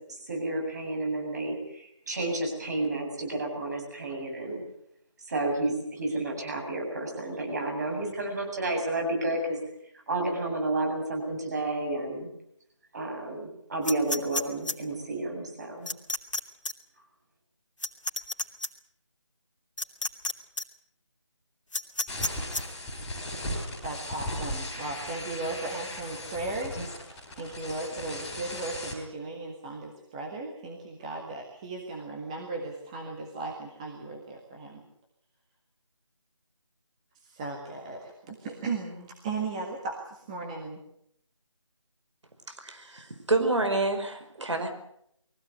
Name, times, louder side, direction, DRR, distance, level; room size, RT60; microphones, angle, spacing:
voice 1, 0.1-4.6 5.2-9.6 10.1-12.3 12.9-15.9, right 2 dB, 35° right, 2 dB, 7.9 m, -31 dB
sound 1, 13.8-14.7 15.9-16.4 16.6-16.7 17.8-18.7 19.8-20.3 20.6-20.7 21.7-22.6, left 2 dB, 75° left, 2.9 m, -30 dB
sound 2, 22.1-28.9, left 1 dB, 5° left, 4.5 m, -37 dB
voice 2, 23.8-34.8 37.2-40.8, right 3 dB, 10° right, -1 dB, 1.6 m, -36 dB
voice 3, 42.6-44.7, right 2 dB, 65° right, 6 dB, 5.1 m, -28 dB
23.0 x 16.0 x 9.5 m, 0.72 s
figure-of-eight pair, 165°, 16 cm